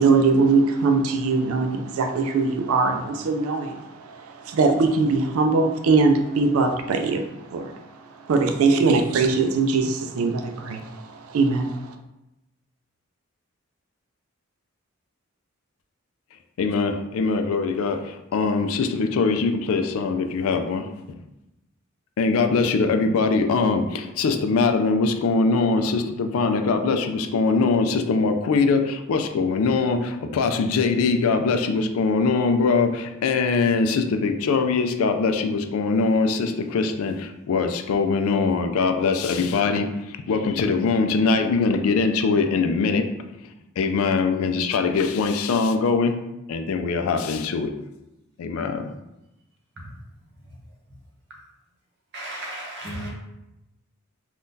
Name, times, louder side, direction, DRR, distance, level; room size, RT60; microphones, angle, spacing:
voice 1, 0.0-7.8 8.3-11.9, right 4 dB, 75° right, 0.3 m, -21 dB
voice 2, 16.6-21.2 22.2-43.1 43.4-46.2 46.5-47.7 48.4-48.9, left 4 dB, 75° left, 0.3 m, -22 dB
voice 3, 52.1-53.1, right 1 dB, 50° right, 0.8 m, -34 dB
3.6 x 2.3 x 2.7 m
head